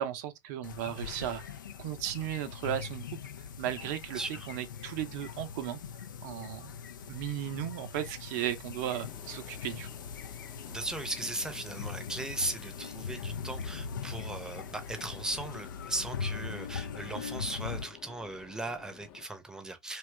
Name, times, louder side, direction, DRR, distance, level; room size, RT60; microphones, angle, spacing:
voice 1, 0.0-3.1 3.6-4.2 4.5-5.8 6.2-6.7 7.1-9.9, right 11 dB, 55° right, 0.6 m, -35 dB
sound 1, 0.6-17.8, left 6 dB, 75° left, 0.4 m, -41 dB
voice 2, 4.1-4.5 10.7-20.0, right 2 dB, 5° right, 0.7 m, -37 dB
sound 2, 8.9-19.3, left 10 dB, 45° left, 0.7 m, -52 dB
2.8 x 2.3 x 3.2 m
figure-of-eight pair, 85°, 11 cm